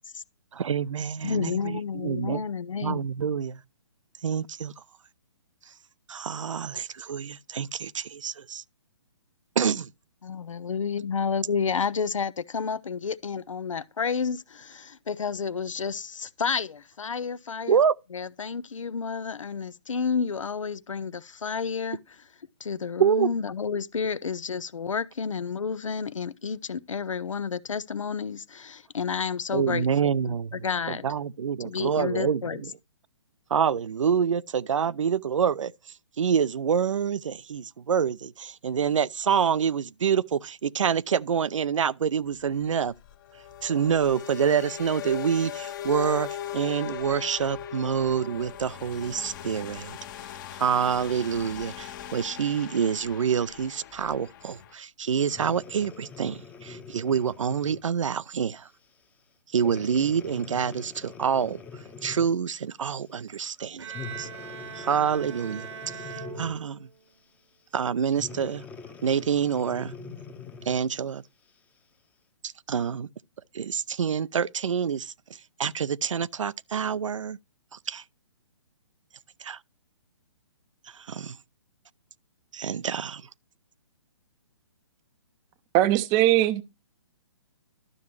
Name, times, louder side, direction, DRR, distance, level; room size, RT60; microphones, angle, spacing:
voice 1, 0.5-1.5 2.0-2.4 2.8-3.6 4.2-4.7 6.1-8.6 9.6-9.9 17.7-18.0 23.0-23.3 29.5-30.5 30.9-32.4 33.5-35.7 36.2-42.9 43.6-50.0 50.6-58.6 59.5-61.6 62.0-63.9 64.2-64.3 64.8-65.7 66.4-66.8 67.7-68.6 69.0-69.9 70.7-71.2 72.7-73.1 73.5-75.1 75.6-77.4 77.9-78.0 79.4-79.6 81.1-81.3 82.5-83.2, right 7 dB, 80° right, 0.5 m, -26 dB
voice 2, 1.2-3.1 10.2-17.8 18.1-22.2 22.6-31.1 31.6-32.6, left 6 dB, 90° left, 0.6 m, -30 dB
sound 1, 42.3-54.7, left 10 dB, 40° left, 1.1 m, -39 dB
Breathing, 55.2-57.9 58.5-58.7 59.6-62.4 63.9-66.7 68.1-70.9 71.5-71.6, left 5 dB, 10° left, 0.8 m, -43 dB
Bowed string instrument, 63.8-67.1, right 8 dB, 65° right, 1.1 m, -41 dB
voice 3, 85.7-86.6, right 14 dB, 20° right, 0.6 m, -20 dB
12.0 x 7.0 x 3.1 m
hypercardioid pair, 140°, 16 cm